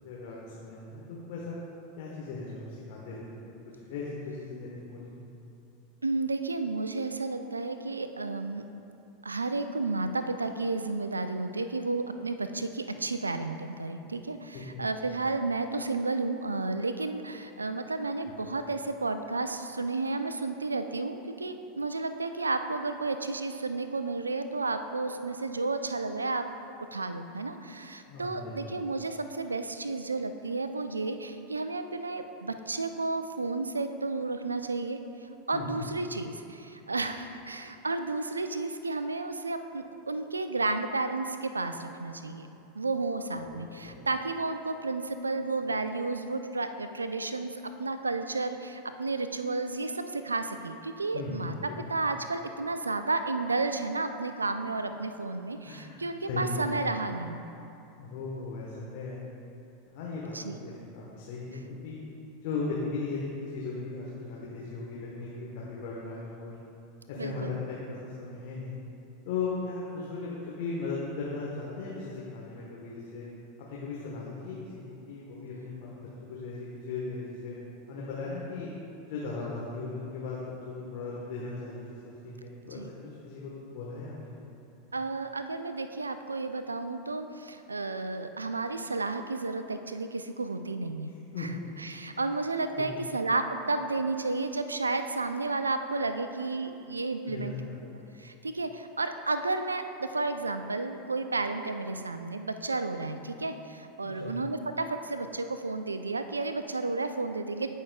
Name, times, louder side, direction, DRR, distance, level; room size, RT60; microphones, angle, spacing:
voice 1, 0.0-1.6 2.0-3.5 3.9-5.1 14.5-14.9 18.5-18.6 28.1-28.7 35.5-35.9 43.1-43.6 43.8-44.0 51.1-52.0 55.7-56.0 56.3-56.6 58.0-59.3 59.9-60.3 60.6-62.0 62.4-66.5 67.1-68.8 69.2-73.2 73.6-74.8 75.1-77.6 77.9-78.7 79.1-82.8 83.2-84.3 91.3-91.5 92.8-92.9 97.2-97.9 103.1-103.2 104.0-104.4, left 3 dB, 55° left, -5 dB, 1.2 m, -37 dB
voice 2, 6.0-8.6 9.2-26.5 26.9-35.0 35.5-42.5 42.7-57.4 60.3-60.6 67.2-67.6 82.7-82.9 84.9-91.1 91.4-97.5 98.2-107.7, right 3 dB, 85° right, 9 dB, 0.4 m, -32 dB
15.0 x 5.5 x 2.3 m, 2.7 s
figure-of-eight pair, 85°, 0 cm